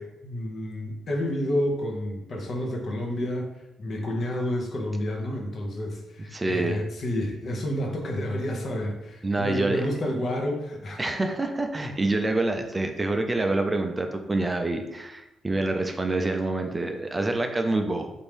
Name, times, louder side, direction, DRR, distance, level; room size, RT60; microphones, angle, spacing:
voice 1, 0.0-3.5 3.8-11.0, left 1 dB, 55° left, 0 dB, 0.8 m, -30 dB
voice 2, 6.3-6.8 9.2-9.9 11.0-18.1, right 2 dB, 25° right, 5 dB, 0.4 m, -26 dB
3.4 x 2.6 x 3.4 m, 0.95 s
supercardioid pair, 55°, 0 cm